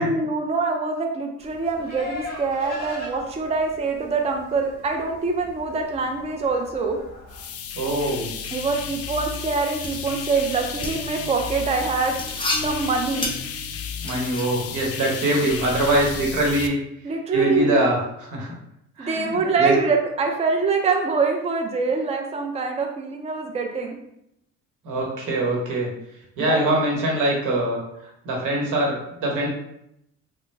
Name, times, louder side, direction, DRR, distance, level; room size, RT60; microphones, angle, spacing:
voice 1, 0.0-7.0 8.5-13.3 17.0-17.8 19.0-23.9 26.5-26.8, right 4 dB, 20° right, 2 dB, 0.4 m, -24 dB
Livestock farm animals working animals, 1.4-7.5, left 2 dB, 35° left, 1.2 m, -40 dB
sound 1, 7.3-16.7, left 6 dB, 50° left, 0.4 m, -33 dB
voice 2, 7.7-8.3 14.0-16.8 17.3-18.5 19.0-19.7 24.8-25.9 26.4-27.8 28.2-29.5, right 1 dB, 90° right, -1 dB, 1.0 m, -23 dB
sound 2, 9.4-14.4, left 2 dB, 15° left, 0.7 m, -32 dB
3.3 x 2.1 x 3.2 m, 0.79 s
cardioid pair, 90°, 30 cm